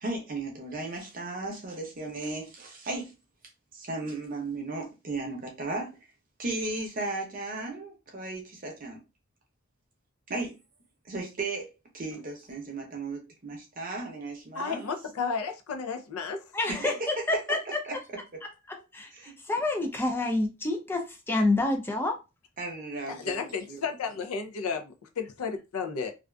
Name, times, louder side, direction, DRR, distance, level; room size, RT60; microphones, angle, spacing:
voice 1, 0.0-3.1 3.7-6.0 6.4-9.0 10.3-10.6 11.0-11.7 11.9-14.9 16.7-17.1 17.9-18.0 19.1-19.4 22.6-23.8, right 2 dB, 40° right, 0.7 m, -35 dB
voice 2, 14.5-16.4 23.1-26.1, left 5 dB, 85° left, 0.5 m, -33 dB
voice 3, 16.5-17.8 18.4-22.2, left 2 dB, 10° left, 0.3 m, -28 dB
2.4 x 2.4 x 2.2 m
head